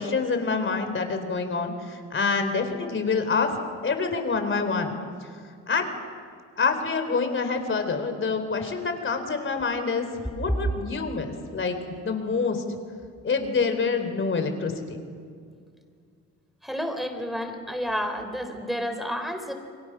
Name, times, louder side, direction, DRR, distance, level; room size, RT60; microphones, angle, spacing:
voice 1, 0.0-3.5 3.8-5.0 5.7-5.9 6.6-10.1 10.4-11.8 12.0-12.6 13.2-15.0, left 4 dB, 40° left, 7 dB, 3.8 m, -26 dB
voice 2, 16.6-19.5, equal, ahead, 6 dB, 4.0 m, -30 dB
29.0 x 22.5 x 6.3 m, 2.2 s
cardioid pair, 90°, 30 cm